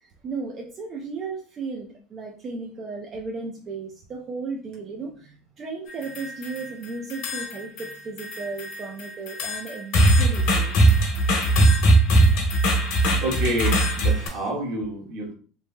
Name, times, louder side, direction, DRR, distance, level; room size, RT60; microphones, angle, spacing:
voice 1, 0.2-10.9, right 4 dB, 25° right, 0 dB, 0.4 m, -35 dB
sound 1, 5.9-6.7 7.1-7.9 8.2-14.3, right 1 dB, 60° left, 1.0 m, -20 dB
voice 2, 13.2-15.3, right 1 dB, 55° right, -1 dB, 1.2 m, -28 dB
3.0 x 2.8 x 2.2 m, 0.40 s
cardioid pair, 160°, 0 cm